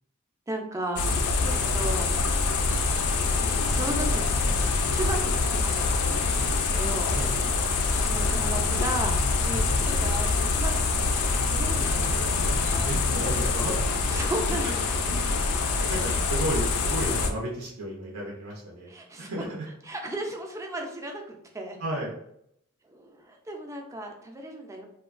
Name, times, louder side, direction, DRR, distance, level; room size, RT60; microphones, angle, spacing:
voice 1, 0.5-2.1 2.9-4.2 4.9-5.6 6.1-7.1 8.0-9.2 9.4-13.0 14.1-14.6 15.0-15.1 18.9-19.3 19.8-21.8 22.9-24.9, right 1 dB, 15° right, 2 dB, 0.4 m, -35 dB
sound 1, 1.0-17.3, left 3 dB, 75° left, 0.4 m, -25 dB
voice 2, 12.9-13.7 14.6-15.0 15.6-18.9 19.2-19.6 21.8-22.1, right 1 dB, 85° right, -3 dB, 0.6 m, -33 dB
2.8 x 2.2 x 2.4 m, 0.74 s
head